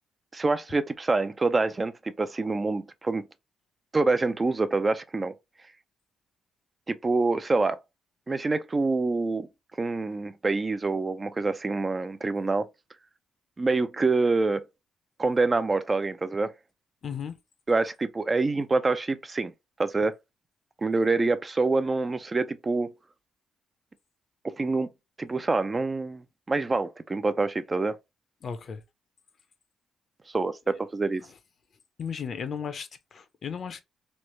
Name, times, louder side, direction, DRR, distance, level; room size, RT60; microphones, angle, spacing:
voice 1, 0.3-3.2 3.9-5.3 6.9-7.8 8.3-9.5 9.8-12.7 13.6-14.6 15.2-16.5 17.7-19.5 19.8-20.1 20.8-22.9 24.4-24.9 25.2-26.2 26.5-28.0 30.3-31.2, right 3 dB, 25° right, 0.3 m, -26 dB
voice 2, 17.0-17.4 28.4-28.8 32.0-33.8, left 7 dB, 50° left, 0.5 m, -35 dB
3.1 x 2.0 x 3.0 m
cardioid pair, 90°, 0 cm